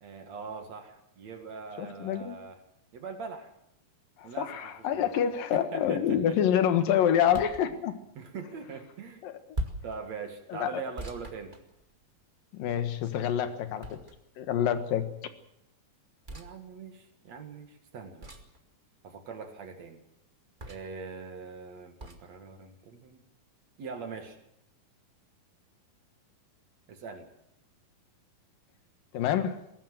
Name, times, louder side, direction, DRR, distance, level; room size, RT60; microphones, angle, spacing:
voice 1, 0.0-2.6 2.9-3.5 4.2-5.3 5.5-6.4 8.1-9.2 9.8-11.5 16.3-18.3 19.0-20.0 20.7-23.2 23.8-24.4 26.9-27.3, right 5 dB, 55° right, 6 dB, 3.0 m, -42 dB
voice 2, 1.8-2.4 4.2-7.9 9.2-9.3 10.5-10.7 12.5-14.0 14.4-15.1 29.1-29.6, left 9 dB, 75° left, 10 dB, 3.2 m, -27 dB
sound 1, 7.3-7.7 9.5-10.0 11.0-12.1 13.8-14.4 16.2-16.5 18.2-18.6 20.6-21.0 22.0-22.2, right 1 dB, 20° right, 1.5 m, -39 dB
21.5 x 17.5 x 7.8 m, 0.80 s
omnidirectional pair, 4.1 m